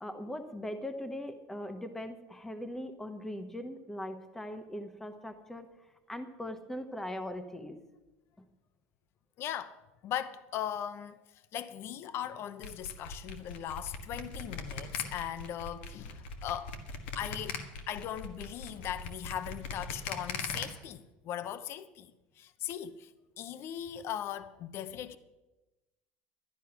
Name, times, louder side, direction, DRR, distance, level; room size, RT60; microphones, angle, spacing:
voice 1, 0.0-5.7 6.1-7.8, left 1 dB, 5° left, 1.0 m, -40 dB
voice 2, 9.4-9.8 10.0-11.2 11.5-16.7 17.1-17.6 17.9-22.1 22.4-23.1 23.4-25.2, left 10 dB, 45° left, 0.8 m, -38 dB
sound 1, 12.6-20.6, left 5 dB, 90° left, 1.6 m, -40 dB
12.5 x 10.0 x 5.8 m
supercardioid pair, 130°, 6 cm